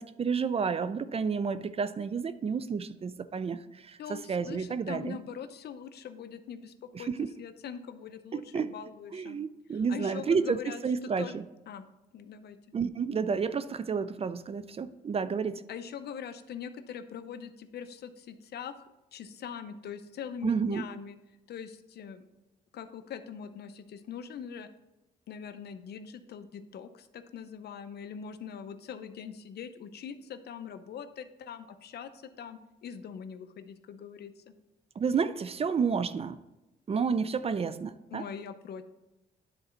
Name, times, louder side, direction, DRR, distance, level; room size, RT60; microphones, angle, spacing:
voice 1, 0.0-5.2 6.9-7.3 8.3-8.7 9.1-11.4 12.7-15.6 20.4-20.8 35.0-36.4 36.9-38.2, right 5 dB, 35° right, 14 dB, 0.4 m, -30 dB
voice 2, 4.0-9.4 9.7-11.4 11.7-11.9 12.1-12.6 15.7-21.2 21.5-22.2 22.7-24.7 25.3-34.5 38.1-38.8, left 7 dB, 70° left, 11 dB, 0.6 m, -42 dB
9.8 x 3.9 x 4.4 m, 0.99 s
cardioid pair, 85°, 17 cm